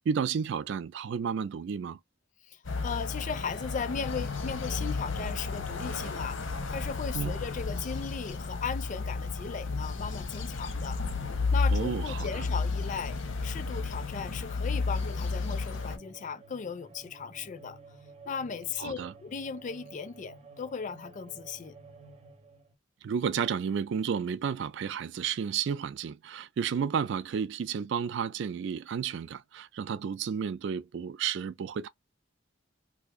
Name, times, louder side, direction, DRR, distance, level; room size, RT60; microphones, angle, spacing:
voice 1, 0.1-2.0 7.1-7.3 11.7-12.5 18.8-19.1 23.0-31.9, right 7 dB, 65° right, 0.3 m, -32 dB
voice 2, 2.5-11.0 11.5-13.2 13.4-17.8 18.3-21.7, left 6 dB, 40° left, 0.4 m, -37 dB
sound 1, 2.6-16.0, left 4 dB, 85° left, 0.8 m, -32 dB
sound 2, 14.6-22.8, right 3 dB, 35° right, 0.8 m, -52 dB
2.8 x 2.4 x 3.5 m
head